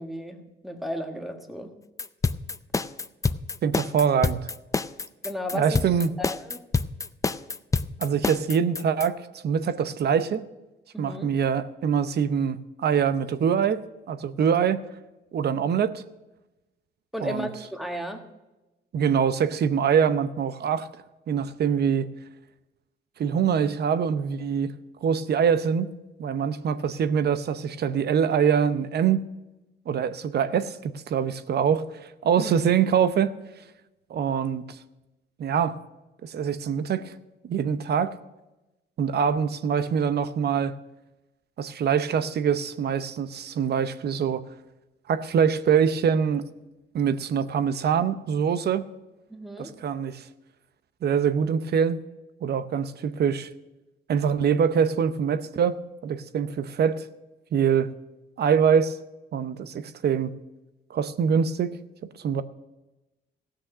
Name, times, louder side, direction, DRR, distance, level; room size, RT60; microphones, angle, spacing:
voice 1, 0.0-1.7 5.2-5.9 6.2-6.6 10.9-11.3 17.1-18.2 32.4-32.6 49.3-49.7, equal, ahead, 1.5 m, -34 dB
sound 1, 2.0-9.1, left 4 dB, 15° left, 0.4 m, -27 dB
voice 2, 3.6-4.5 5.5-6.1 8.0-10.4 11.0-14.8 15.3-16.0 17.2-17.5 18.9-20.9 21.3-22.1 23.2-24.7 25.0-25.9 26.2-29.2 29.9-33.3 34.1-34.6 35.4-35.8 36.2-37.1 37.5-38.2 39.0-40.7 41.6-44.4 45.1-46.4 46.9-48.8 49.6-50.2 51.0-52.0 52.4-53.5 54.1-55.8 56.0-57.0 57.5-57.9 58.4-59.0 59.3-60.4 60.9-61.8 62.2-62.4, right 7 dB, 55° right, 0.7 m, -24 dB
15.0 x 6.4 x 6.1 m
cardioid pair, 90°, 20 cm